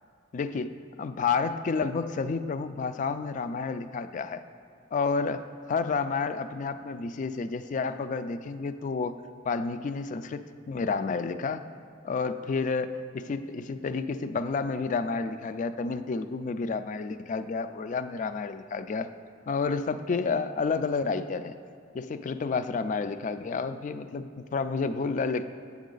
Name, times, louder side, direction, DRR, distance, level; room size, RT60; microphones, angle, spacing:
voice 1, 0.3-0.7 1.0-4.4 4.9-11.6 12.0-19.1 19.5-21.6 21.9-25.4, left 4 dB, 40° left, 12 dB, 0.3 m, -30 dB
8.2 x 7.2 x 3.9 m, 2.4 s
head